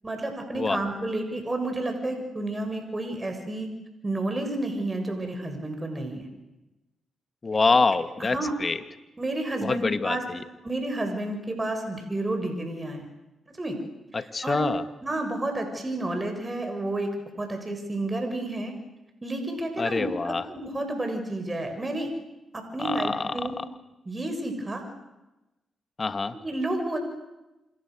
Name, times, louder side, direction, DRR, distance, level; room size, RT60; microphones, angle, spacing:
voice 1, 0.0-3.7 4.0-6.3 8.2-8.5 9.2-10.2 10.6-13.1 13.6-13.8 14.1-14.7 15.0-18.7 19.2-22.1 22.5-23.6 24.1-24.8 26.4-27.0, right 2 dB, 30° right, 5 dB, 7.2 m, -30 dB
voice 2, 7.4-8.8 9.6-10.4 14.1-14.8 19.8-20.4 22.8-23.3 26.0-26.4, left 4 dB, 40° left, 10 dB, 2.3 m, -25 dB
29.0 x 27.5 x 6.7 m, 0.99 s
hypercardioid pair, 40°, 0 cm